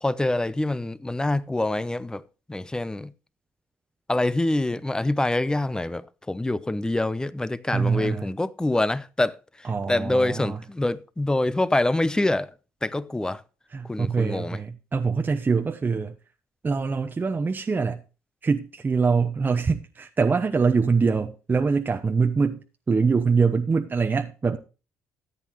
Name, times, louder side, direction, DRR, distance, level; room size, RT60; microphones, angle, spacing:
voice 1, 0.0-2.2 2.5-3.1 4.1-12.5 12.8-13.4 13.9-14.6, left 2 dB, 10° left, 0.8 m, -25 dB
voice 2, 7.7-8.3 9.6-10.6 13.7-16.1 16.6-18.0 18.4-22.6 22.9-24.6, right 5 dB, 30° right, 0.9 m, -24 dB
14.0 x 8.4 x 3.1 m
hypercardioid pair, 60°, 6 cm